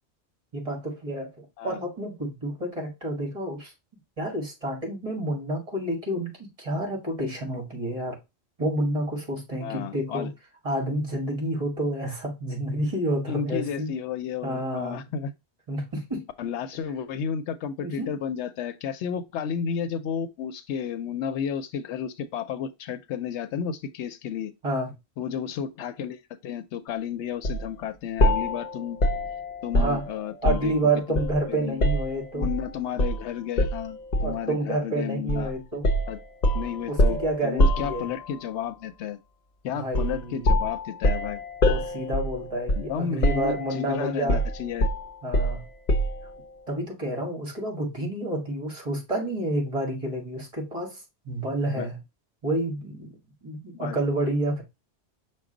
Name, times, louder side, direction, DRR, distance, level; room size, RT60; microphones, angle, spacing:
voice 1, 0.5-3.7 4.2-8.2 8.6-10.3 10.6-13.9 14.4-15.0 15.7-16.2 17.8-18.1 24.6-24.9 29.7-30.0 30.4-32.5 34.2-35.8 36.9-38.1 39.6-40.6 41.7-44.4 45.2-45.7 46.7-52.0 52.4-54.6, right 1 dB, 30° right, 1.4 m, -29 dB
voice 2, 9.6-10.3 13.3-15.3 16.4-24.5 25.2-29.0 29.6-31.2 31.5-31.8 32.3-35.5 36.1-36.2 36.5-39.2 39.6-41.4 42.8-44.9 51.7-51.9 53.7-54.0, left 8 dB, 85° left, 0.9 m, -32 dB
sound 1, 27.4-27.7 28.2-30.8 31.1-32.6 33.0-33.2 33.6-34.5 35.3-35.5 35.8-38.4 39.9-40.2 40.4-43.0 43.2-43.8 44.3-46.3, left 1 dB, 50° left, 0.6 m, -25 dB
6.0 x 2.2 x 3.7 m
omnidirectional pair, 1.1 m